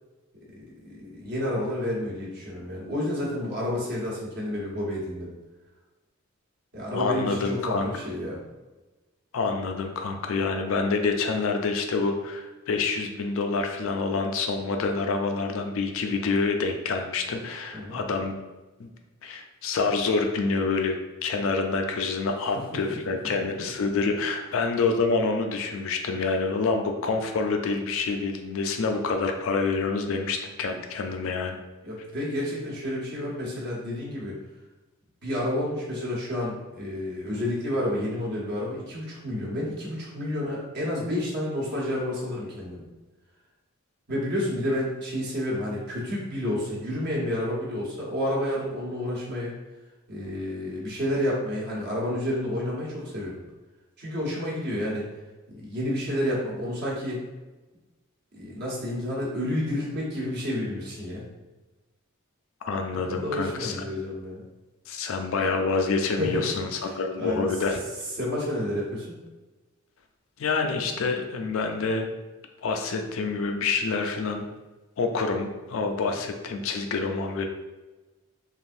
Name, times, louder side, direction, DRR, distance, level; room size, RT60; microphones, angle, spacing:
voice 1, 0.8-5.3 6.7-8.4 17.7-18.0 22.7-23.0 23.2-23.3 30.1-30.3 31.8-34.4 35.2-42.8 44.1-49.5 50.1-53.4 54.0-55.0 55.5-57.2 58.3-61.2 62.9-64.4 66.2-66.5 66.8-67.5 68.2-69.2, left 1 dB, 50° right, -5 dB, 1.0 m, -30 dB
voice 2, 6.9-7.9 9.3-18.3 18.8-18.9 19.2-31.6 62.6-63.8 64.9-67.8 70.4-72.1 72.6-74.5 75.0-77.5, left 4 dB, 65° left, 4 dB, 0.4 m, -27 dB
3.3 x 2.5 x 2.6 m, 1.2 s
head